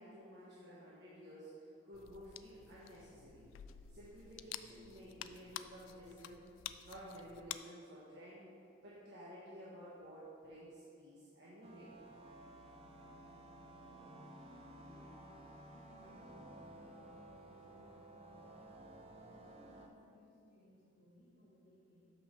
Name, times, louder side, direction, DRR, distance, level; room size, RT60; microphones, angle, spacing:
voice 1, 0.0-3.4 3.9-6.4 6.8-8.4 8.8-12.0, equal, 60° right, -8 dB, 1.3 m, -53 dB
sound 1, 1.9-7.6, left 11 dB, 85° left, 0.3 m, -50 dB
sound 2, 11.6-19.9, right 1 dB, 30° right, 0.6 m, -55 dB
voice 2, 13.9-22.1, equal, 45° left, -6 dB, 2.1 m, -64 dB
6.1 x 5.8 x 6.3 m, 2.5 s
head